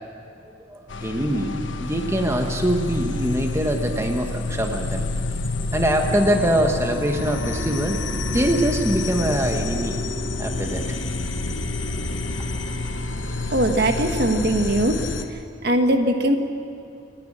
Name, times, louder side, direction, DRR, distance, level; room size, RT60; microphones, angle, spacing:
voice 1, 0.7-5.1 5.7-8.0 8.3-10.0 10.4-10.8, right 1 dB, 15° right, 3 dB, 1.3 m, -23 dB
sound 1, 0.9-15.2, left 2 dB, 80° left, 1.2 m, -28 dB
voice 2, 13.5-15.0 15.6-16.4, right 1 dB, 55° right, 5 dB, 1.5 m, -20 dB
29.0 x 10.5 x 8.9 m, 2.7 s
head